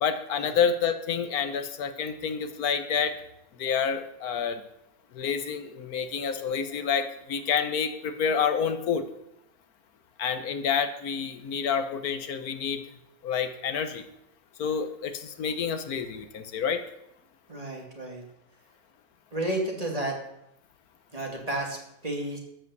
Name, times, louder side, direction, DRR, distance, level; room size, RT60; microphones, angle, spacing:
voice 1, 0.0-3.1 3.6-4.6 5.1-9.0 10.2-12.8 13.2-14.0 14.6-16.8, left 7 dB, 85° left, 9 dB, 1.4 m, -28 dB
voice 2, 17.5-18.2 19.3-20.1 21.1-22.4, right 1 dB, 25° right, 0 dB, 2.3 m, -32 dB
12.5 x 5.7 x 8.0 m, 0.79 s
omnidirectional pair, 1.6 m